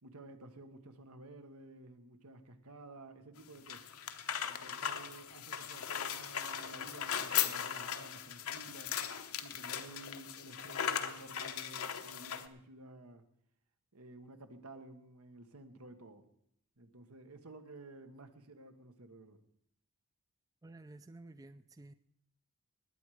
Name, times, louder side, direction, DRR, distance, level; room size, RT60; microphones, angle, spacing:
voice 1, 0.0-3.8 4.4-8.9 9.4-13.2 13.9-16.3 16.8-19.4, right 2 dB, 85° right, 8 dB, 1.4 m, -53 dB
sound 1, 3.4-12.5, left 9 dB, 75° left, 0.9 m, -38 dB
voice 2, 20.6-21.9, right 2 dB, 15° right, 12 dB, 0.4 m, -52 dB
20.0 x 8.9 x 4.9 m, 0.72 s
head